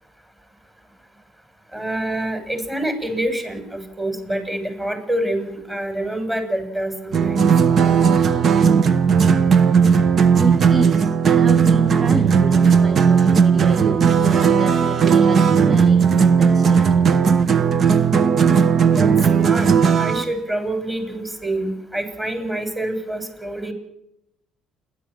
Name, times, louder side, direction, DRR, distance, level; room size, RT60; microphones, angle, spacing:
voice 1, 1.7-7.5 19.0-19.1 19.4-19.7 20.0-23.7, right 1 dB, 15° right, 7 dB, 7.8 m, -26 dB
sound 1, 7.1-20.3, right 6 dB, 50° right, 1.1 m, -16 dB
voice 2, 10.4-16.9, right 2 dB, 30° right, 10 dB, 1.5 m, -30 dB
30.0 x 12.5 x 7.7 m, 0.81 s
hypercardioid pair, 60°, 0 cm